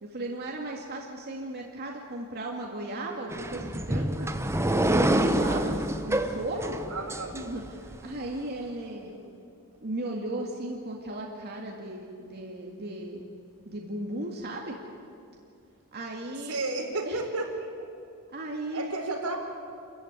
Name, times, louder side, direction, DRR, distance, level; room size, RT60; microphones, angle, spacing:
voice 1, 0.0-4.3 4.7-6.8 7.3-9.2 9.8-13.3 13.7-14.8 15.9-16.6 17.1-17.2 18.3-18.9, right 1 dB, 45° right, 0 dB, 2.2 m, -36 dB
sound 1, 3.3-8.0, right 1 dB, 10° right, 1.0 m, -27 dB
voice 2, 6.9-7.4 16.5-17.7 18.7-19.4, right 2 dB, 85° right, 1 dB, 4.6 m, -32 dB
28.0 x 15.0 x 9.8 m, 2.4 s
head